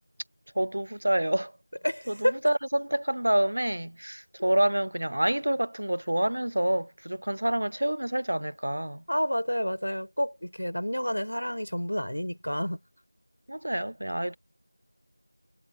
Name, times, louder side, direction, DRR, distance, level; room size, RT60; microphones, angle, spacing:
voice 1, 0.6-1.5 2.1-9.0 13.5-14.4, right 1 dB, 45° right, 0.7 m, -27 dB
voice 2, 1.8-2.4 9.1-12.8, equal, 70° left, 4.2 m, -29 dB
figure-of-eight pair, 175°, 0 cm